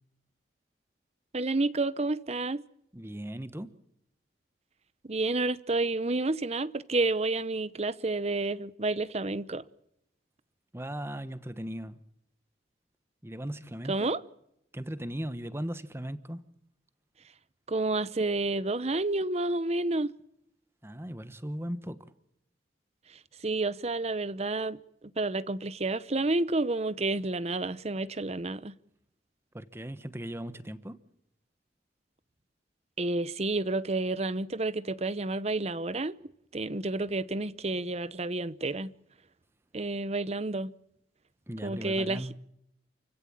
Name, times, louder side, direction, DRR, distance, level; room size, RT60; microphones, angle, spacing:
voice 1, 1.3-2.6 5.0-9.6 13.9-14.2 17.7-20.1 23.4-24.8 25.2-28.7 33.0-36.1 36.5-38.9 39.7-40.7 41.6-42.3, right 2 dB, 35° right, 0.9 m, -30 dB
voice 2, 2.9-3.7 10.7-12.0 13.2-14.1 14.7-16.4 20.8-22.1 29.5-31.0 41.5-42.3, equal, 15° right, 1.2 m, -38 dB
29.0 x 16.0 x 8.8 m
head